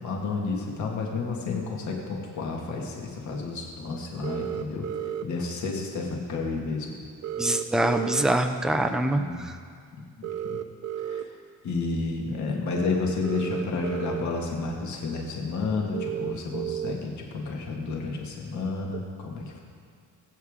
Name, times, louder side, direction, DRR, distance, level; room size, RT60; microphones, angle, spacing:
voice 1, 0.0-4.8 5.2-6.9 9.2-9.4 10.0-10.6 11.0-11.3 11.6-19.6, left 3 dB, 55° left, 0 dB, 1.9 m, -31 dB
sound 1, 4.2-5.2 7.2-8.2 10.2-11.2 13.2-14.2 14.8-14.9 15.9-16.9 18.9-19.0, right 10 dB, 50° right, 0.7 m, -32 dB
voice 2, 7.4-9.6, right 1 dB, ahead, 6 dB, 0.4 m, -24 dB
21.5 x 8.2 x 3.6 m, 2.1 s
cardioid pair, 165°, 35 cm